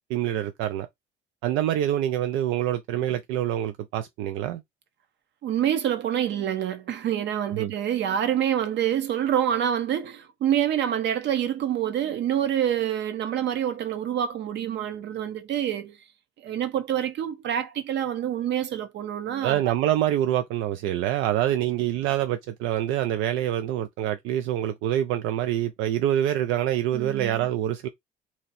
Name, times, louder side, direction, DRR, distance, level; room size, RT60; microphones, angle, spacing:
voice 1, 0.1-0.9 1.4-4.6 7.6-7.7 19.4-27.9, right 12 dB, 85° right, 0.4 m, -26 dB
voice 2, 5.4-16.0 16.4-19.6 26.9-27.5, right 10 dB, 65° right, 0.9 m, -27 dB
2.9 x 2.7 x 4.0 m
cardioid pair, 110°, 20 cm